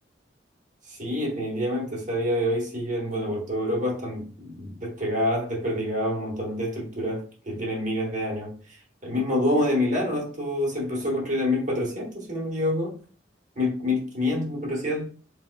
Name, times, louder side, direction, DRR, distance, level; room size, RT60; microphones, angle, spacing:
voice 1, 0.9-8.6 9.0-13.0 13.6-15.0, left 1 dB, 45° right, 1.1 m, -27 dB
4.2 x 2.1 x 2.3 m
head